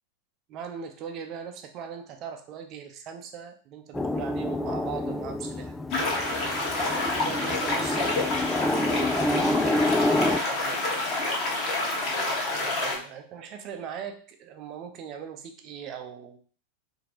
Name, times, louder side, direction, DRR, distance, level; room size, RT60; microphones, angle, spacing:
voice 1, 0.5-5.7 7.2-8.2 8.9-9.7 10.1-11.2 12.5-16.4, right 7 dB, 35° right, 5 dB, 0.8 m, -40 dB
sound 1, 3.9-10.4, left 2 dB, 10° left, 0.3 m, -28 dB
sound 2, 5.9-13.0, left 2 dB, 35° left, 1.4 m, -28 dB
4.5 x 2.9 x 3.9 m, 0.40 s
figure-of-eight pair, 90°, 0 cm